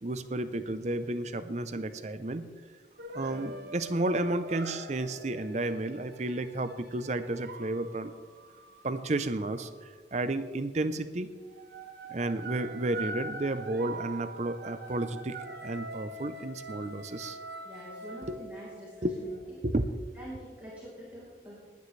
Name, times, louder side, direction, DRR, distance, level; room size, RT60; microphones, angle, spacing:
voice 1, 0.0-2.5 3.1-8.1 8.8-11.3 12.1-15.4 15.6-17.4 18.2-18.4 19.0-19.2 19.6-19.9, right 2 dB, 40° right, 11 dB, 0.6 m, -32 dB
sound 1, 3.0-9.9 10.7-11.0 11.4-19.4, right 2 dB, 65° right, 1.1 m, -44 dB
voice 2, 17.6-19.4 20.2-21.6, equal, 10° right, -8 dB, 3.9 m, -46 dB
20.0 x 9.3 x 3.3 m, 1.4 s
head